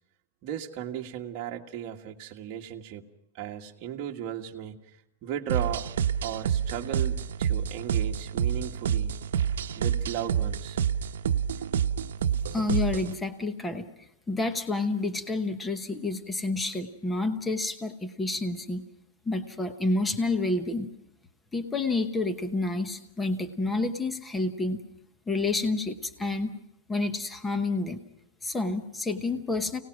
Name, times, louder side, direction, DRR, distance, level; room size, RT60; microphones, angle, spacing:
voice 1, 0.4-3.1 3.3-4.8 5.2-5.9 6.2-9.2 9.7-10.8, right 10 dB, 30° right, 1 dB, 1.6 m, -36 dB
sound 1, 5.5-13.2, right 8 dB, 80° right, 0.9 m, -28 dB
voice 2, 12.5-13.9 14.3-18.9 19.3-20.9 21.5-24.8 25.3-26.5 26.9-28.0 28.4-29.8, left 3 dB, 5° left, 9 dB, 0.9 m, -29 dB
30.0 x 18.5 x 6.2 m, 0.82 s
supercardioid pair, 180°, 0 cm